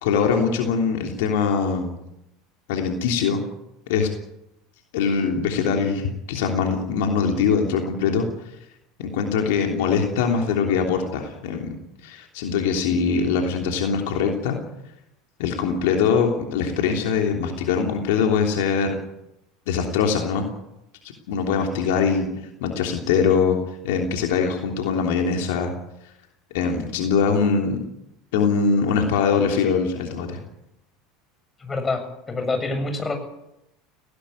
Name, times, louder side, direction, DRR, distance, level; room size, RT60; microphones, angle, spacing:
voice 1, 0.0-2.0 2.7-3.4 3.9-4.1 4.9-8.3 9.0-11.8 12.0-14.6 15.4-19.0 19.7-20.5 21.3-22.2 22.6-23.6 23.8-25.7 26.5-27.8 28.3-30.4, left 6 dB, 70° left, 2 dB, 3.2 m, -22 dB
voice 2, 31.6-33.2, left 3 dB, 20° left, 6 dB, 7.3 m, -26 dB
18.5 x 18.0 x 9.6 m, 0.86 s
hypercardioid pair, 80°, 0 cm